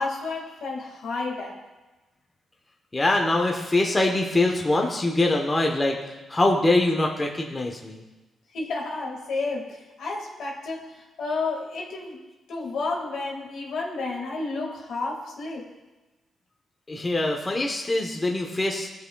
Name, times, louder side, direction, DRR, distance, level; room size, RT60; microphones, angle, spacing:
voice 1, 0.0-1.6 8.5-12.2 12.5-15.7, left 3 dB, 75° left, -2 dB, 1.9 m, -31 dB
voice 2, 2.9-8.0 16.9-18.9, left 2 dB, 20° left, 1 dB, 0.9 m, -23 dB
16.5 x 5.6 x 2.3 m, 1.1 s
cardioid pair, 90°, 0 cm